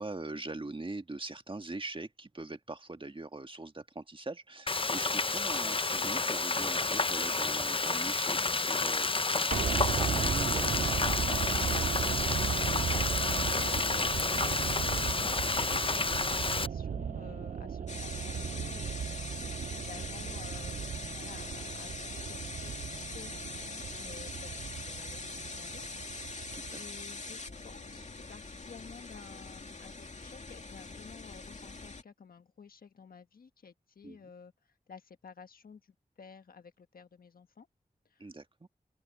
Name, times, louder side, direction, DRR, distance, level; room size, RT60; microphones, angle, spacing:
voice 1, 0.0-11.7 26.5-26.8 34.0-34.2 38.2-38.7, right 2 dB, 35° right, 1.6 m, -42 dB
Frying (food), 4.7-16.7, left 3 dB, 40° left, 0.7 m, -30 dB
sound 1, 9.5-27.7 28.0-28.1, right 7 dB, 65° right, 0.4 m, -36 dB
voice 2, 12.2-25.9 26.1-37.7 38.0-38.3, left 6 dB, 90° left, 1.4 m, -53 dB
sound 2, 17.9-32.0, left 3 dB, 55° left, 2.5 m, -43 dB
open air
cardioid pair, 45°, 15 cm